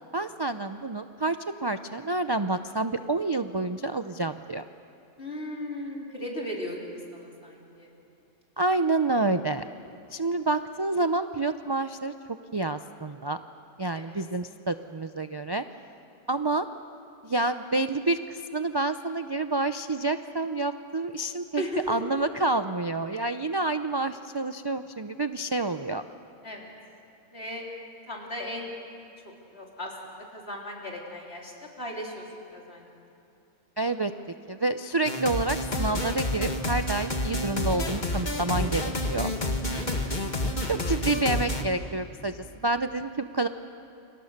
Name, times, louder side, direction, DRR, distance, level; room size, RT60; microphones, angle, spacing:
voice 1, 0.1-4.6 8.6-9.6 10.1-12.1 12.5-13.4 13.8-15.6 16.3-16.7 17.2-26.0 33.8-34.1 34.5-39.3 40.7-43.5, right 2 dB, 35° right, 9 dB, 0.4 m, -28 dB
voice 2, 5.2-6.8 7.1-7.9 13.9-14.2 21.6-21.9 26.4-26.7 27.3-27.7 28.1-28.7 29.5-31.5 31.8-32.2 32.5-32.9 39.7-40.3, equal, 55° left, -2 dB, 4.2 m, -36 dB
sound 1, 35.1-41.6, left 1 dB, 35° left, 1.9 m, -29 dB
29.5 x 25.5 x 6.6 m, 2.6 s
omnidirectional pair, 1.3 m